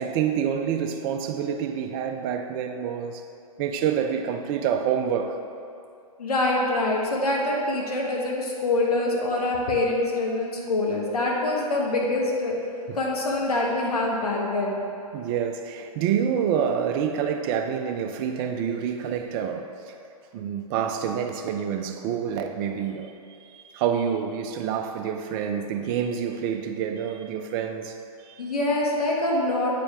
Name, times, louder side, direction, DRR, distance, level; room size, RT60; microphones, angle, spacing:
voice 1, 0.0-3.2 3.6-5.4 12.9-13.0 15.1-19.9 20.3-23.1 23.4-28.4, right 8 dB, 35° right, 5 dB, 0.6 m, -27 dB
voice 2, 6.2-12.5 12.9-14.8 28.4-29.7, left 2 dB, 80° left, -2 dB, 1.4 m, -25 dB
8.3 x 5.1 x 3.4 m, 2.5 s
hypercardioid pair, 120°, 19 cm